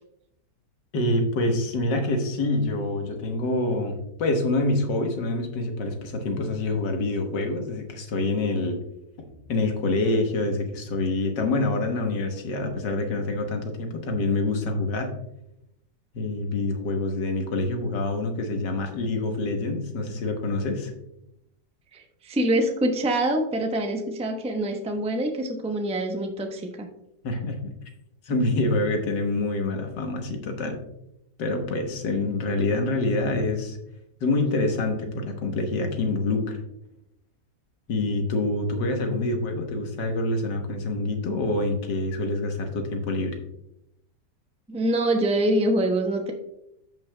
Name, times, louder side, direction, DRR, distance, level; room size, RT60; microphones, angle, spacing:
voice 1, 0.9-8.8 9.2-15.1 16.1-20.9 27.2-27.8 28.3-30.8 31.4-33.8 34.2-36.6 37.9-43.4, left 2 dB, 85° left, 4 dB, 1.8 m, -26 dB
voice 2, 21.9-26.9 44.7-46.3, right 1 dB, 10° right, 3 dB, 0.4 m, -25 dB
14.5 x 5.6 x 2.2 m, 0.83 s
omnidirectional pair, 1.8 m